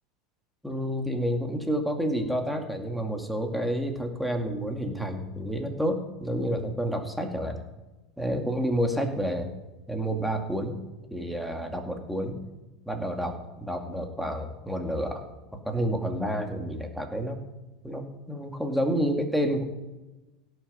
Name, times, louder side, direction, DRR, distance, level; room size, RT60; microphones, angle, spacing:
voice 1, 0.6-7.6 8.2-9.5 9.9-10.8 11.1-12.4 12.9-15.2 15.5-17.4 17.8-19.6, equal, ahead, 3 dB, 2.1 m, -29 dB
17.0 x 6.8 x 5.4 m, 1.1 s
supercardioid pair, 125°, 3 cm